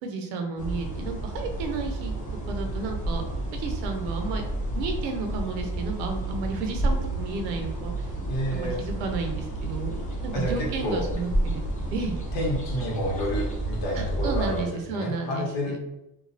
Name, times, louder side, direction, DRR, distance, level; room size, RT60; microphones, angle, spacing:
voice 1, 0.0-2.2 2.5-3.2 3.5-4.4 4.7-7.9 8.5-11.6 11.9-12.2 14.2-15.7, right 4 dB, 90° right, 4 dB, 0.8 m, -32 dB
sound 1, 0.6-14.6, right 2 dB, 15° left, 0.8 m, -31 dB
voice 2, 8.3-8.8 10.3-11.0 12.3-14.6 14.9-15.8, equal, 60° left, -3 dB, 1.4 m, -29 dB
3.0 x 2.3 x 2.6 m, 0.90 s
supercardioid pair, 100°, 49 cm